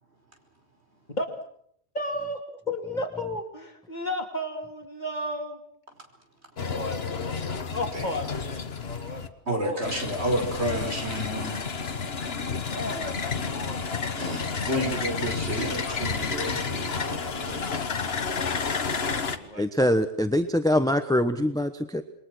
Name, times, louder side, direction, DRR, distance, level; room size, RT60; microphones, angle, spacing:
voice 1, 1.9-5.6 6.7-9.2 9.6-9.8 12.7-14.4 14.7-14.9 18.9-19.7, left 1 dB, 40° left, 4 dB, 3.1 m, -34 dB
sound 1, 6.6-9.3 9.8-19.4, left 5 dB, 60° left, 1.6 m, -31 dB
voice 2, 9.5-11.6 14.2-17.9, right 1 dB, 60° right, 4 dB, 5.4 m, -31 dB
voice 3, 19.6-22.0, left 1 dB, 5° left, 9 dB, 1.0 m, -23 dB
28.0 x 22.0 x 6.2 m, 0.67 s
omnidirectional pair, 1.2 m